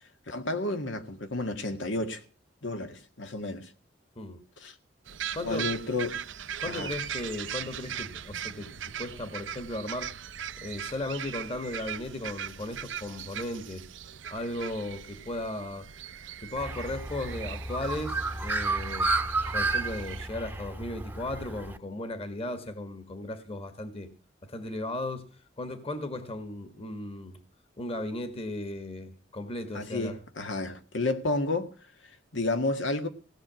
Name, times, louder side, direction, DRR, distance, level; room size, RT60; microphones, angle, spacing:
voice 1, 0.3-2.2 2.6-3.7 4.6-4.7 5.4-6.3 6.7-6.9 29.7-31.7 32.3-33.1, left 2 dB, 85° left, 1.9 m, -31 dB
sound 1, 5.1-20.3, right 9 dB, 90° right, 0.7 m, -39 dB
voice 2, 5.3-5.7 6.6-10.1 10.6-13.8 14.3-15.9 16.4-19.1 19.5-24.1 24.4-27.4 27.8-30.2, left 1 dB, 30° left, 1.6 m, -36 dB
Bird, 16.6-21.8, right 3 dB, 10° right, 0.9 m, -31 dB
17.0 x 6.7 x 9.2 m
head